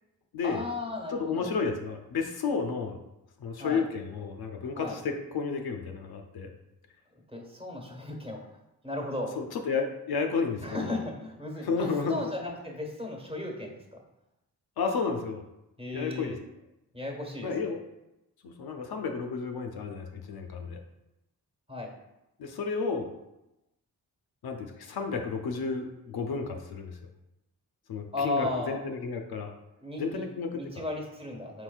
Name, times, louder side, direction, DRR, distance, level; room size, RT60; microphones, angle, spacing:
voice 1, 0.4-1.5 3.6-3.8 4.7-5.0 7.3-8.4 8.8-9.3 10.6-14.0 15.8-16.4 16.9-17.8 21.7-21.9 25.1-25.2 28.1-28.8 29.8-30.3 30.5-31.6, left 2 dB, 15° right, 0 dB, 1.3 m, -35 dB
voice 2, 1.1-3.0 3.4-6.5 9.4-11.0 11.6-12.2 14.8-15.4 15.9-16.3 17.4-17.8 18.4-20.8 22.4-23.1 24.4-27.0 27.9-29.5 30.0-30.8, left 5 dB, 65° left, 4 dB, 0.6 m, -32 dB
4.4 x 3.9 x 2.3 m, 0.91 s
cardioid pair, 50°, 40 cm